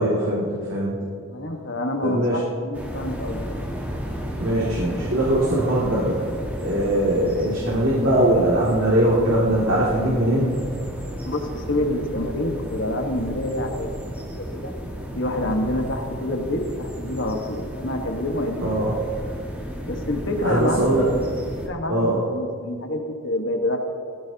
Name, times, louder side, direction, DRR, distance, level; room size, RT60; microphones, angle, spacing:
voice 1, 0.0-0.9 2.0-2.4 4.4-6.2 6.6-10.5 18.6-18.9 20.4-21.0 21.9-22.2, right 1 dB, 75° right, -6 dB, 2.6 m, -21 dB
voice 2, 1.0-3.5 11.2-13.9 14.3-14.7 15.1-19.0 19.9-21.2 21.6-23.8, left 1 dB, 60° left, 3 dB, 1.6 m, -27 dB
sound 1, 2.7-21.7, equal, 10° right, 1.7 m, -33 dB
18.0 x 15.0 x 2.9 m, 2.4 s
head